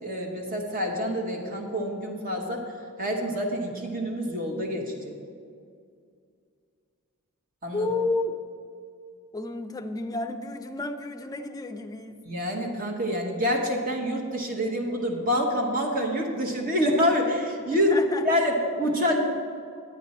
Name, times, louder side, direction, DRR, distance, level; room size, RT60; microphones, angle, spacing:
voice 1, 0.0-2.6 3.0-5.1 7.6-7.9 12.3-17.9 18.2-19.2, equal, 40° right, 1 dB, 1.0 m, -27 dB
voice 2, 7.7-8.3 9.3-12.2 17.7-18.3, left 2 dB, 15° left, 6 dB, 0.4 m, -31 dB
10.0 x 9.5 x 4.2 m, 2.4 s
head